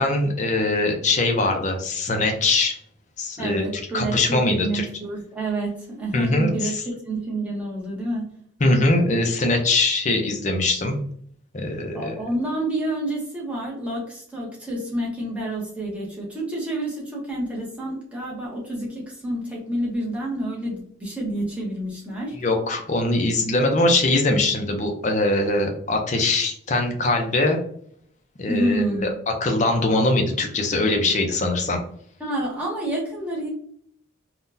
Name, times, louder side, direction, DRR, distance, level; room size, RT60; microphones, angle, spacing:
voice 1, 0.0-2.8 3.2-3.7 3.9-4.8 6.1-6.8 8.6-11.0 11.5-12.2 22.4-27.6 28.4-31.8, left 2 dB, 35° left, 3 dB, 0.6 m, -22 dB
voice 2, 3.4-6.7 7.0-8.2 11.9-22.4 28.5-29.1 32.2-33.5, right 1 dB, 5° right, -5 dB, 1.0 m, -28 dB
3.7 x 2.3 x 2.6 m, 0.63 s
head